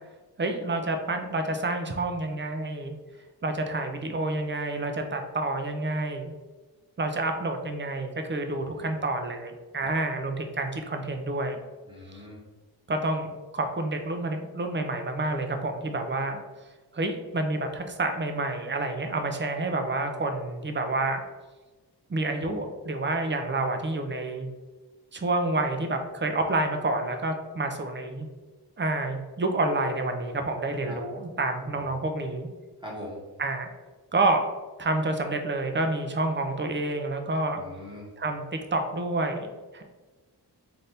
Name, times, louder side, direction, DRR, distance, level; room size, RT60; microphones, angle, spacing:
voice 1, 0.4-2.9 3.4-6.3 7.0-11.6 12.9-16.4 16.9-21.2 22.1-24.5 25.1-28.3 28.8-32.5 33.4-33.7 34.1-34.5 34.8-37.6 38.2-39.8, right 2 dB, 30° right, 5 dB, 0.4 m, -28 dB
voice 2, 11.9-12.4 30.8-31.0 31.7-31.9 32.8-33.2 37.5-38.0, equal, 10° right, -5 dB, 1.2 m, -42 dB
4.1 x 2.6 x 3.3 m, 1.2 s
wide cardioid pair, 110°, 42 cm